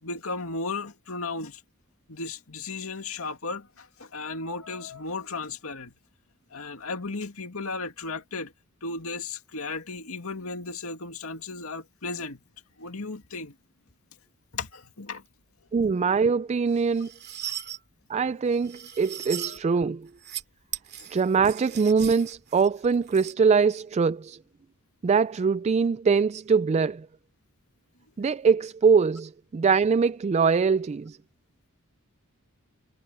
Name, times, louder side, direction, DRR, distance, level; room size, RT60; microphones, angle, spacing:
voice 1, 0.0-1.6 2.1-5.9 6.5-8.5 8.8-12.4 12.8-13.5 14.5-15.2 17.4-17.6 19.3-19.6, left 3 dB, 80° left, 2.2 m, -35 dB
voice 2, 15.7-17.1 18.1-20.1 21.1-24.4 25.0-27.1 28.2-31.2, right 5 dB, 30° right, 0.3 m, -23 dB
sound 1, 16.7-17.8 18.5-19.6 20.1-20.4 20.7-23.3, right 11 dB, 50° right, 2.4 m, -38 dB
head